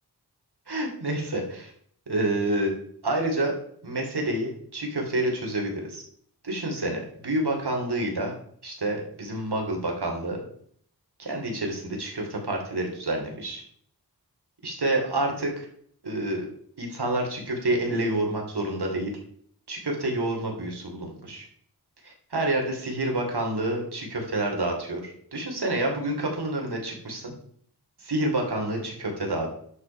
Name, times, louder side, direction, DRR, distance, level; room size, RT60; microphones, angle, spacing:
voice 1, 0.7-1.7 2.1-2.7 3.0-3.5 3.8-6.0 6.4-8.3 8.6-10.4 11.2-13.6 14.6-15.7 16.0-16.5 16.8-19.1 19.7-21.5 22.0-27.3 28.0-29.5, right 1 dB, 75° right, 1 dB, 3.3 m, -28 dB
11.0 x 7.7 x 4.7 m, 0.63 s
wide cardioid pair, 70°, 40 cm